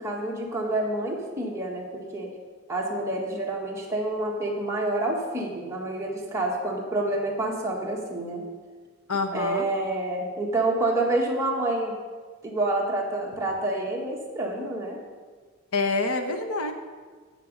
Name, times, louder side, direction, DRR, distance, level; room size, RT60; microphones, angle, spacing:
voice 1, 0.0-2.3 2.7-8.5 9.3-12.0 12.4-15.0, right 2 dB, 15° right, -2 dB, 1.6 m, -28 dB
voice 2, 9.1-9.7 15.7-16.7, left 3 dB, 80° left, 5 dB, 1.0 m, -26 dB
15.5 x 6.2 x 5.4 m, 1.5 s
head